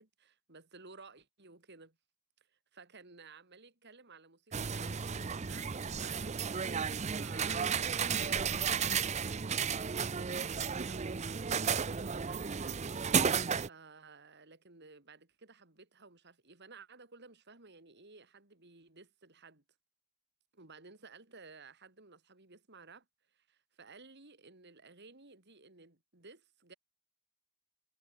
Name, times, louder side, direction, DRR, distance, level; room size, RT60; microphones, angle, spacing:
voice 1, 0.0-2.0 2.5-6.4 6.7-12.8 13.1-19.6 20.5-26.7, right 4 dB, 55° right, 3.3 m, -56 dB
sound 1, 4.5-13.7, right 6 dB, 30° right, 0.6 m, -33 dB
head